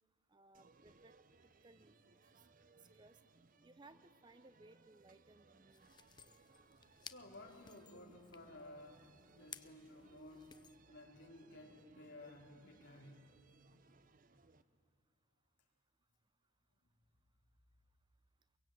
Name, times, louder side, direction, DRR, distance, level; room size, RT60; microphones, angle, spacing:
voice 1, 0.3-1.1 1.6-1.9 2.2-2.4 2.8-3.2 3.6-5.9, right 2 dB, 20° right, 13 dB, 0.6 m, -63 dB
sound 1, 0.5-14.6, right 3 dB, 40° right, 0.9 m, -67 dB
sound 2, 5.7-10.8, left 7 dB, 20° left, 0.6 m, -58 dB
voice 2, 7.0-9.0 9.4-10.5 10.9-13.2, left 1 dB, 60° left, -1 dB, 4.7 m, -55 dB
23.5 x 23.0 x 9.2 m, 2.6 s
head